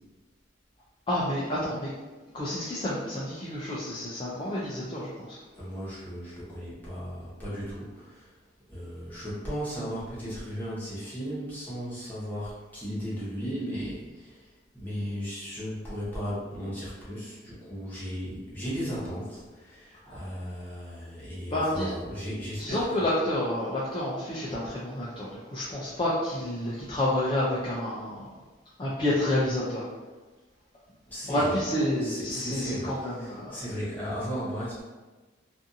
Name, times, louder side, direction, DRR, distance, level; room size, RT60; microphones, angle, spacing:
voice 1, 1.1-1.9 2.3-5.4 20.1-20.2 21.5-21.9 22.6-28.3 28.8-29.8 31.3-33.5, left 1 dB, 25° left, -7 dB, 0.4 m, -29 dB
voice 2, 5.5-8.3 8.7-23.1 31.1-31.6 32.0-34.8, equal, 10° left, -9 dB, 0.9 m, -36 dB
2.5 x 2.4 x 2.6 m, 1.3 s
head